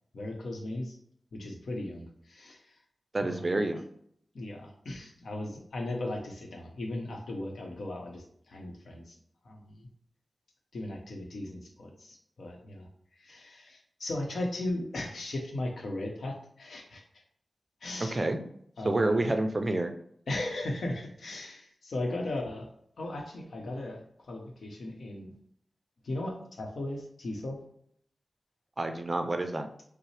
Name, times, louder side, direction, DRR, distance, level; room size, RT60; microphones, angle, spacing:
voice 1, 0.1-1.0 1.3-2.8 3.2-3.6 4.3-9.2 9.4-9.9 10.7-17.0 17.8-18.3 18.8-19.3 20.3-22.7 23.0-25.3 26.0-27.6, left 1 dB, 80° left, 1 dB, 0.8 m, -37 dB
voice 2, 3.1-3.9 18.1-18.4 18.8-19.9 28.8-29.7, right 2 dB, 30° right, 6 dB, 0.4 m, -28 dB
5.4 x 2.0 x 3.2 m, 0.68 s
wide cardioid pair, 110°, 0 cm